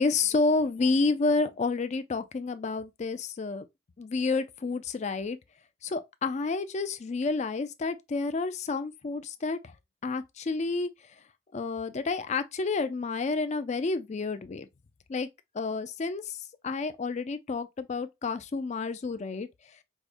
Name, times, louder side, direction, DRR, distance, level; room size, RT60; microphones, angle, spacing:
voice 1, 0.0-3.7 4.0-5.4 5.8-9.7 10.0-10.9 11.5-14.7 15.1-15.3 15.5-16.4 16.6-19.5, left 3 dB, 40° left, 0.4 m, -29 dB
4.7 x 2.1 x 2.5 m
head